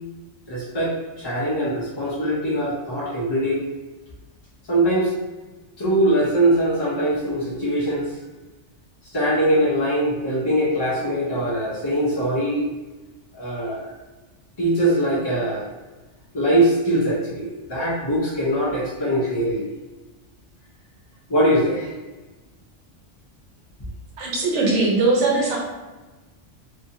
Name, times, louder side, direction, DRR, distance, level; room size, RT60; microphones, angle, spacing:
voice 1, 0.5-3.6 4.7-5.1 5.8-8.1 9.1-12.6 13.3-13.9 14.6-15.7 16.3-19.7 21.3-21.9, right 1 dB, 35° left, -7 dB, 0.4 m, -22 dB
voice 2, 24.2-25.6, right 3 dB, 75° right, -2 dB, 1.0 m, -20 dB
2.7 x 2.6 x 2.6 m, 1.2 s
omnidirectional pair, 1.3 m